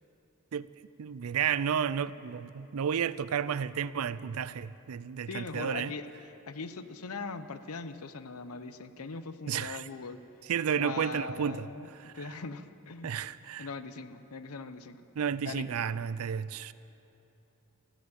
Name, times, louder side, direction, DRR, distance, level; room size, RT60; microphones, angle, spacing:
voice 1, 1.0-5.9 9.5-9.9 10.5-12.2 13.0-13.7 15.2-16.7, right 7 dB, 75° right, 0.4 m, -32 dB
voice 2, 5.3-6.1 6.5-10.2 10.8-11.9 12.2-13.2 13.6-15.0 15.4-15.7, left 4 dB, 80° left, 0.7 m, -40 dB
14.5 x 11.0 x 8.8 m
head